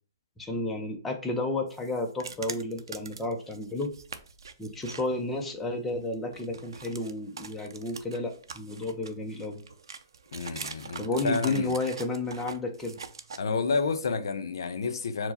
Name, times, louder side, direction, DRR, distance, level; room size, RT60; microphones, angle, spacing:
voice 1, 0.4-3.9 4.6-9.6 11.0-13.0, left 2 dB, 5° left, 0.4 m, -32 dB
sound 1, 1.7-5.1 5.4-5.5 5.9-13.4, right 5 dB, 85° right, 0.5 m, -43 dB
voice 2, 10.3-11.7 13.4-15.3, left 4 dB, 70° left, 0.5 m, -30 dB
4.6 x 2.0 x 4.0 m
hypercardioid pair, 175°, 2 cm